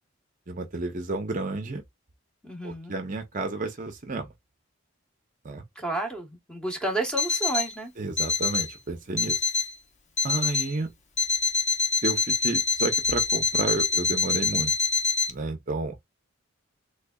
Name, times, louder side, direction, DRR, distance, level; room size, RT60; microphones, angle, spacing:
voice 1, 0.5-1.8 2.6-4.3 5.4-5.6 8.0-9.4 10.2-10.9 12.0-14.7 15.3-15.9, right 2 dB, 35° right, 0.6 m, -31 dB
voice 2, 2.4-3.0 5.7-7.9, right 2 dB, 5° left, 1.0 m, -31 dB
Alarm, 7.2-7.7 8.2-8.7 9.2-9.7 10.2-10.7 11.2-15.3, left 4 dB, 35° left, 0.6 m, -25 dB
3.4 x 3.3 x 2.3 m
head